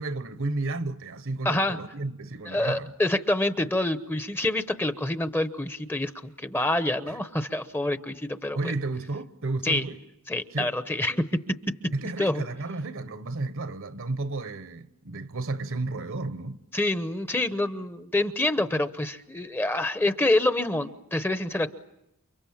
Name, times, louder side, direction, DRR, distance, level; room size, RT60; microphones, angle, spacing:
voice 1, 0.0-2.9 7.1-7.2 8.5-10.0 10.5-10.7 11.9-16.6, right 2 dB, 60° right, 1.1 m, -32 dB
voice 2, 1.4-1.8 2.5-8.7 9.6-9.8 10.3-11.7 12.2-12.4 16.7-21.7, left 1 dB, 10° left, 0.9 m, -27 dB
29.5 x 25.0 x 7.3 m
head